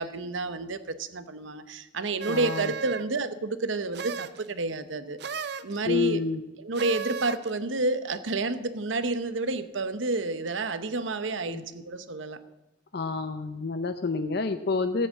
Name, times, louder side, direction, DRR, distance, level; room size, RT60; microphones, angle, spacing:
voice 1, 0.0-6.2 6.6-12.4, right 3 dB, 85° right, 12 dB, 0.9 m, -30 dB
sound 1, 2.2-3.2 3.9-4.5 5.2-5.8 6.7-7.5, right 6 dB, 60° right, 0.6 m, -35 dB
voice 2, 2.3-2.7 5.9-6.4 11.5-11.6 12.9-15.1, left 4 dB, 55° left, 10 dB, 0.6 m, -28 dB
14.5 x 7.8 x 7.5 m, 1.0 s
head